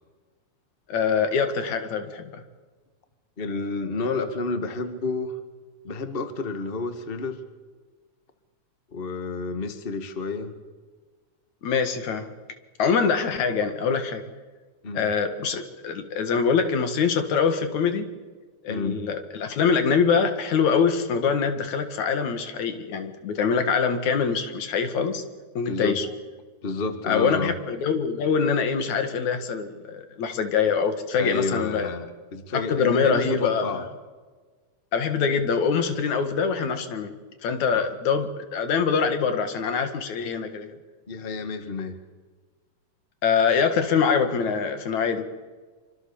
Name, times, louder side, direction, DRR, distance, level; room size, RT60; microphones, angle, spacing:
voice 1, 0.9-2.4 11.6-12.3 12.8-14.2 14.9-18.1 18.6-25.2 25.5-26.1 27.0-31.9 32.5-33.9 34.9-37.1 37.4-40.8 43.2-45.2, left 6 dB, 75° left, 8 dB, 3.2 m, -24 dB
voice 2, 3.4-5.4 5.8-7.4 8.9-10.5 14.8-15.1 18.7-19.0 25.7-26.0 26.6-27.5 31.1-33.8 37.7-37.9 41.1-42.0, left 3 dB, 25° left, 8 dB, 1.7 m, -30 dB
25.5 x 25.5 x 7.2 m, 1.4 s
omnidirectional pair, 3.4 m